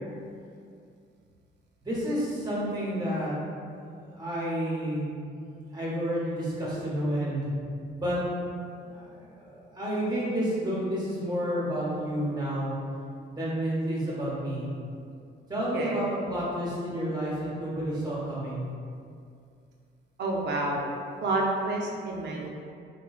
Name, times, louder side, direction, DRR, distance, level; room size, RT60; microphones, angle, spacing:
voice 1, 1.8-3.3 4.1-5.1 5.5-7.5 7.9-8.2 8.8-12.7 13.3-14.7 15.5-18.6, equal, 20° right, -7 dB, 0.9 m, -30 dB
voice 2, 20.2-20.8 21.2-22.5, right 2 dB, 60° right, -2 dB, 0.5 m, -29 dB
3.0 x 2.2 x 2.3 m, 2.3 s
cardioid pair, 90°, 20 cm